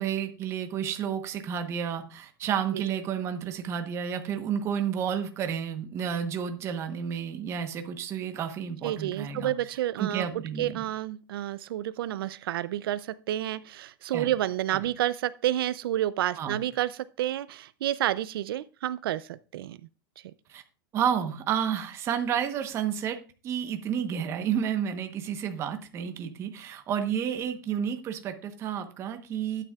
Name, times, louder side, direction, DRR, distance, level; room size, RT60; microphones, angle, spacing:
voice 1, 0.0-9.5 10.0-10.8 14.1-14.3 16.4-16.6 20.5-20.6 20.9-29.6, right 8 dB, 20° right, 7 dB, 1.0 m, -31 dB
voice 2, 8.8-10.3 10.6-19.8, right 13 dB, 80° right, 16 dB, 0.5 m, -30 dB
12.0 x 9.2 x 2.3 m, 0.34 s
supercardioid pair, 170°, 12 cm